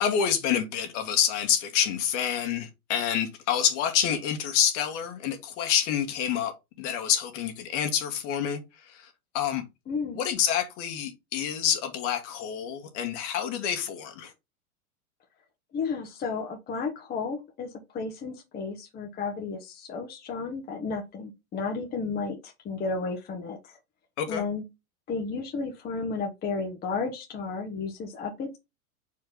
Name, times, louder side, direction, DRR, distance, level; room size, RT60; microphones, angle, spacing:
voice 1, 0.0-9.6 10.1-14.3 24.2-24.4, left 9 dB, 55° left, 2.0 m, -28 dB
voice 2, 9.9-10.2 15.7-23.8 24.3-24.6 25.1-28.6, left 4 dB, 20° left, 1.2 m, -33 dB
5.4 x 4.7 x 3.9 m
hypercardioid pair, 120°, 43 cm